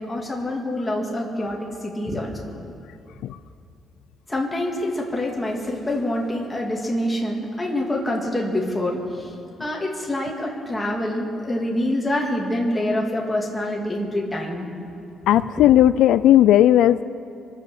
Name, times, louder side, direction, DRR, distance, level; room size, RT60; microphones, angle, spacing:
voice 1, 0.0-2.3 4.3-9.3 9.6-14.7, left 1 dB, 10° left, -2 dB, 2.0 m, -26 dB
voice 2, 15.3-17.0, left 12 dB, 80° left, 14 dB, 0.3 m, -15 dB
24.0 x 8.2 x 6.7 m, 2.6 s
cardioid pair, 180°, 0 cm